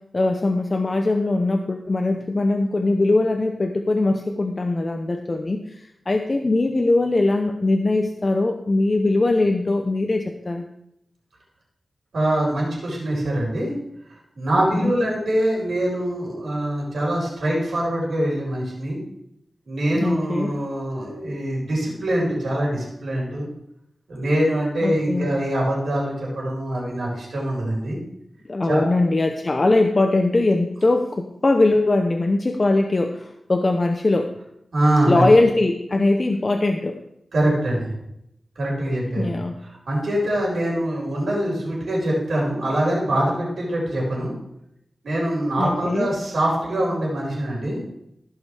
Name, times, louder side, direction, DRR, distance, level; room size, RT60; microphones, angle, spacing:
voice 1, 0.1-5.6 6.1-10.6 14.8-14.9 19.9-20.5 24.8-25.3 28.5-34.3 35.1-37.0 39.2-39.5 45.6-46.1, left 2 dB, 40° left, 5 dB, 0.7 m, -21 dB
voice 2, 12.1-13.7 14.3-19.0 19.7-23.5 24.1-28.0 28.7-28.8 34.7-35.3 37.3-37.9 38.6-44.3 45.0-47.8, right 1 dB, 90° right, -4 dB, 4.4 m, -23 dB
15.5 x 5.4 x 4.7 m, 0.80 s
wide cardioid pair, 90°, 0 cm